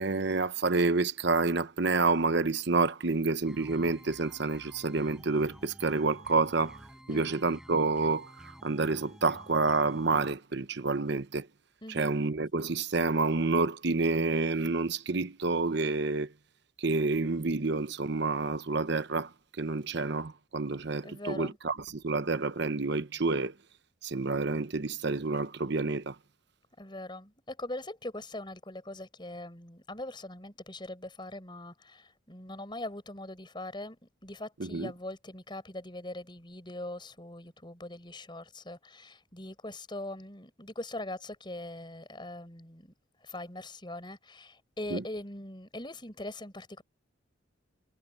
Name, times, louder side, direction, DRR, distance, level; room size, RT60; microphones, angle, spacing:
voice 1, 0.0-6.8 7.1-11.5 11.9-16.3 16.8-19.3 19.6-23.5 24.0-26.2 34.6-34.9 44.9-45.0, right 3 dB, 55° right, 0.9 m, -29 dB
sound 1, 3.5-10.3, equal, 5° right, 5.1 m, -51 dB
voice 2, 11.8-12.2 21.0-21.6 26.8-34.0 34.2-42.9 43.2-46.8, left 1 dB, 25° left, 6.0 m, -41 dB
head